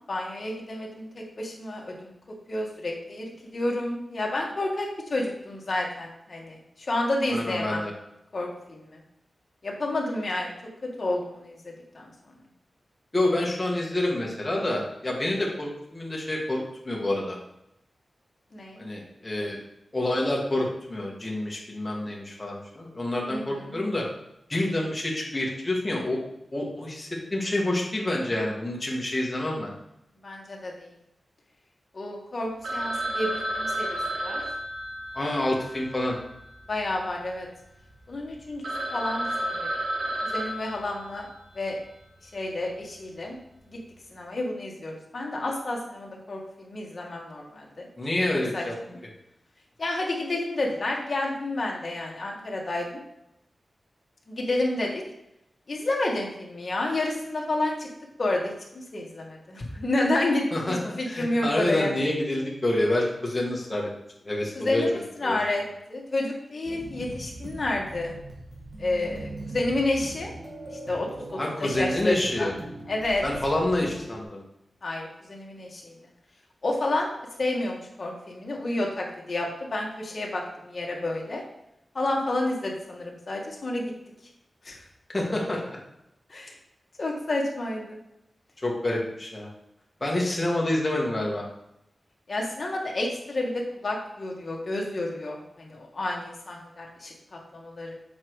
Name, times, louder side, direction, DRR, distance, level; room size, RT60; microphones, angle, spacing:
voice 1, 0.1-2.2 2.5-7.8 8.3-9.0 9.6-10.5 11.0-12.1 18.5-18.8 23.3-23.8 30.2-30.9 31.9-34.4 35.2-35.3 36.7-37.5 38.1-39.7 40.2-41.3 41.5-41.8 42.2-43.4 44.1-47.9 48.5-48.6 49.8-53.0 54.3-55.0 55.7-57.9 58.2-61.9 64.5-65.6 65.9-68.2 68.8-70.3 70.7-72.5 72.9-73.2 74.8-75.9 76.6-77.1 77.4-81.4 81.9-83.8 84.6-84.8 86.3-86.5 87.0-88.0 92.3-97.9, left 2 dB, 45° left, -1 dB, 1.7 m, -30 dB
voice 2, 7.3-7.9 13.1-17.4 18.8-19.6 19.9-24.0 24.5-26.2 26.5-29.7 35.1-36.1 48.0-48.7 60.5-63.9 64.2-64.8 65.2-65.4 71.4-72.5 73.2-74.4 85.1-85.8 88.6-89.5 90.0-91.4, left 1 dB, 20° left, -3 dB, 1.6 m, -27 dB
Telephone, 32.6-37.0 37.2-37.3 37.9-38.0 38.3-38.4 38.6-41.6, right 1 dB, 90° right, 1.4 m, -32 dB
sound 1, 66.6-74.2, right 1 dB, 45° right, 1.9 m, -41 dB
7.3 x 4.8 x 4.7 m, 0.83 s
wide cardioid pair, 145°, 0 cm